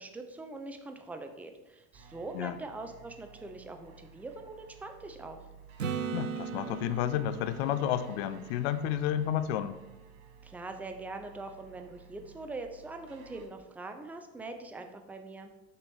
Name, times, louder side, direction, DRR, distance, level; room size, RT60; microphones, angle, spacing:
voice 1, 0.0-5.4 10.4-15.5, right 2 dB, 5° right, 5 dB, 0.6 m, -43 dB
sound 1, 1.9-13.5, right 6 dB, 45° right, 1.0 m, -55 dB
Acoustic guitar / Strum, 5.8-9.6 14.4-14.5, right 6 dB, 90° right, 0.5 m, -39 dB
voice 2, 6.1-9.8, left 10 dB, 55° left, 12 dB, 0.6 m, -31 dB
6.7 x 4.5 x 3.5 m, 0.98 s
figure-of-eight pair, 75°, 37 cm